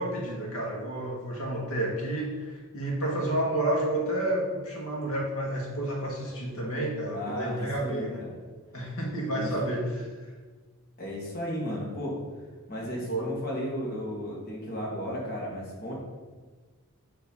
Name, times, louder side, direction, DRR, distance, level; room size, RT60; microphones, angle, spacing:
voice 1, 0.0-8.3 8.7-10.1 12.9-13.3, right 1 dB, 70° left, -2 dB, 1.7 m, -30 dB
voice 2, 7.1-8.3 9.3-9.6 11.0-12.2 12.7-15.9, equal, 45° left, -3 dB, 1.8 m, -34 dB
7.3 x 3.3 x 5.5 m, 1.4 s
head